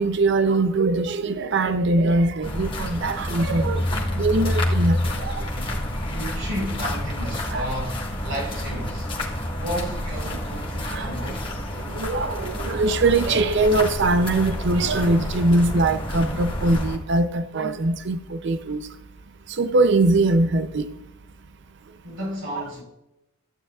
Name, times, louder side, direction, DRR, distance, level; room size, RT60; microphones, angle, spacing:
voice 1, 0.0-5.5 7.5-7.6 10.8-11.1 11.9-18.8 19.5-20.9 22.5-22.6, right 2 dB, 55° right, 0.5 m, -22 dB
sound 1, 2.4-17.0, left 1 dB, 25° left, 1.5 m, -28 dB
voice 2, 6.0-9.1 9.6-11.5 22.0-22.8, equal, 80° right, 4.3 m, -32 dB
14.0 x 9.8 x 2.4 m
head